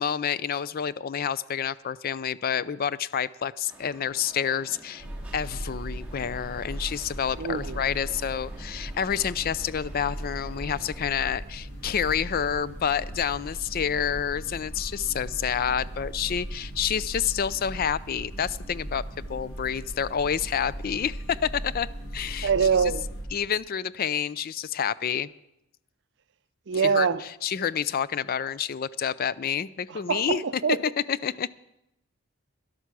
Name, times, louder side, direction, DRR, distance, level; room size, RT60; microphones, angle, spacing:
voice 1, 0.0-5.1 5.3-21.9 22.1-22.5 23.3-25.3 26.8-30.4 30.8-31.5, left 8 dB, 45° left, 19 dB, 0.4 m, -28 dB
sound 1, 3.7-11.0, right 2 dB, 5° right, 2.0 m, -51 dB
sound 2, 5.0-23.2, right 1 dB, 60° left, 6.1 m, -38 dB
voice 2, 7.4-7.8 22.4-23.0 26.7-27.2 29.9-30.8, right 6 dB, 55° right, 15 dB, 0.5 m, -24 dB
13.0 x 11.5 x 6.0 m, 0.87 s
head